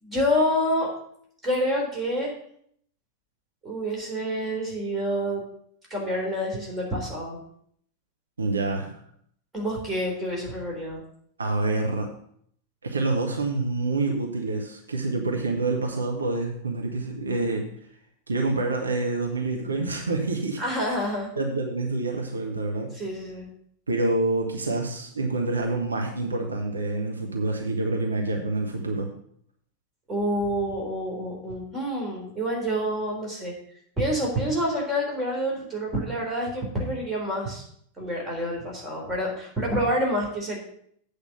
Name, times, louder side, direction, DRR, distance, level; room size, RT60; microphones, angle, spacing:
voice 1, 0.0-0.9 1.4-2.4 3.6-5.4 5.9-7.4 9.5-11.0 20.6-21.3 22.9-23.5 30.1-33.5 34.0-37.6 38.0-40.6, equal, 15° right, -2 dB, 3.7 m, -27 dB
voice 2, 8.4-9.0 11.4-12.1 12.8-17.7 18.3-20.6 21.4-22.9 23.9-29.1, right 2 dB, 75° right, 2 dB, 1.2 m, -27 dB
8.5 x 5.1 x 7.7 m, 0.66 s
figure-of-eight pair, 90°, 0 cm